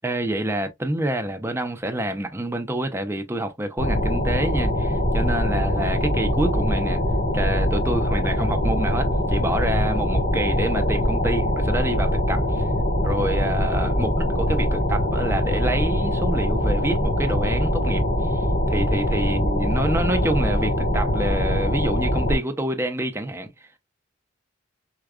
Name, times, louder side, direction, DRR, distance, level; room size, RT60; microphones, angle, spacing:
voice 1, 0.0-7.0 7.3-12.7 13.0-23.8, right 1 dB, 10° right, 0.5 m, -27 dB
sound 1, 3.8-22.4, left 1 dB, 75° left, 2.3 m, -22 dB
4.7 x 2.2 x 2.3 m
head